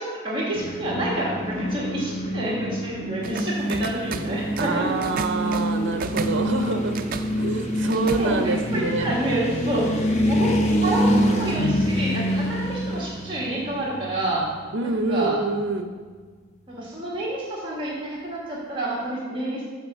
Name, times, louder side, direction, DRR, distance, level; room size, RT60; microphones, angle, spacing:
voice 1, 0.0-5.0 7.8-9.9 10.3-11.1 11.4-14.4 14.8-15.4 16.7-19.6, right 1 dB, 25° right, -5 dB, 1.6 m, -28 dB
sound 1, 0.5-14.7, equal, 35° left, 0.8 m, -26 dB
sound 2, 3.2-8.8, right 5 dB, 45° right, 0.3 m, -36 dB
voice 2, 4.6-7.0 7.4-9.1 14.7-15.9, right 3 dB, 65° right, 5 dB, 0.7 m, -26 dB
6.8 x 4.9 x 6.6 m, 1.5 s
head